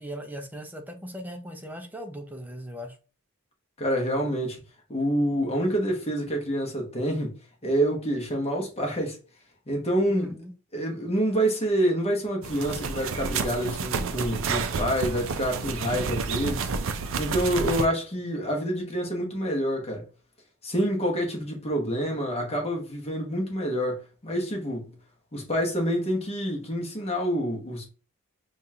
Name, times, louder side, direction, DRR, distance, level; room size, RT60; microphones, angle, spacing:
voice 1, 0.0-3.0 10.1-10.5, equal, 10° right, 0.6 m, -38 dB
voice 2, 3.8-4.6 4.9-7.3 7.6-9.2 9.7-10.3 10.7-20.0 20.6-24.9 25.3-27.9, equal, 30° left, 1.0 m, -27 dB
sound 1, 12.4-17.9, right 5 dB, 65° right, 0.5 m, -30 dB
5.1 x 2.4 x 2.8 m
head